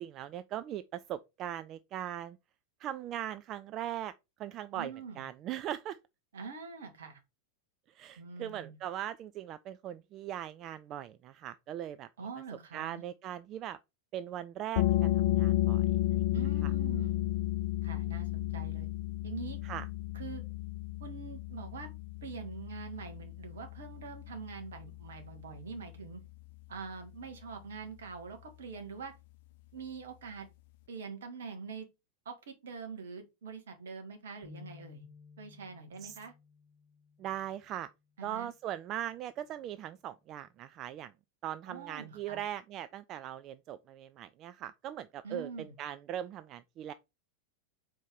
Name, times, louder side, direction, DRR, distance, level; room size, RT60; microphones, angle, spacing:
voice 1, 0.0-2.4 2.8-4.1 4.4-6.0 7.9-12.1 12.7-13.8 14.1-15.8 16.1-16.2 16.6-16.7 19.6-19.9 36.0-36.2 37.2-37.9 38.2-41.1 41.4-46.9, right 11 dB, 35° right, 0.3 m, -40 dB
voice 2, 4.7-5.3 6.3-7.2 8.2-8.8 12.2-13.0 16.3-17.3 17.8-18.9 19.2-19.6 20.1-20.4 21.0-21.9 22.2-26.2 26.7-29.1 29.7-30.5 30.9-31.8 32.2-35.1 35.4-36.3 38.2-38.5 41.7-42.4 45.2-45.7, right 5 dB, 60° right, 1.5 m, -44 dB
sound 1, 14.8-26.1, left 15 dB, 50° left, 0.5 m, -32 dB
sound 2, 34.4-37.9, left 5 dB, 15° left, 2.1 m, -55 dB
4.5 x 4.4 x 5.1 m
figure-of-eight pair, 90°, 0 cm